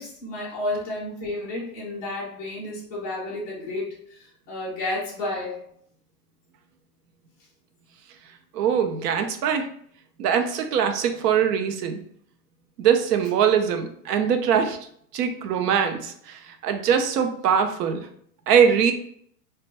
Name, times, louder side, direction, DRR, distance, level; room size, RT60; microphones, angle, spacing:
voice 1, 0.0-5.6, left 2 dB, 15° left, -8 dB, 0.4 m, -31 dB
voice 2, 8.5-9.7 10.2-12.0 12.8-14.8 15.1-18.1 18.5-18.9, right 7 dB, 80° right, 6 dB, 0.6 m, -22 dB
2.1 x 2.1 x 2.8 m, 0.64 s
supercardioid pair, 160°, 47 cm